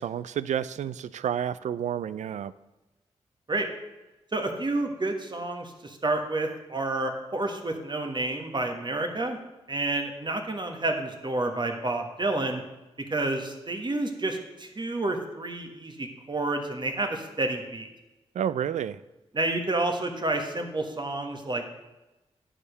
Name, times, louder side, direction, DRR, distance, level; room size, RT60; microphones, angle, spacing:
voice 1, 0.0-2.5 18.3-19.0, right 9 dB, 85° right, 16 dB, 0.4 m, -30 dB
voice 2, 4.3-9.4 9.7-12.6 13.1-17.9 19.3-21.8, right 2 dB, 40° right, 4 dB, 1.5 m, -29 dB
9.7 x 5.0 x 6.7 m, 1.0 s
cardioid pair, 45°, 12 cm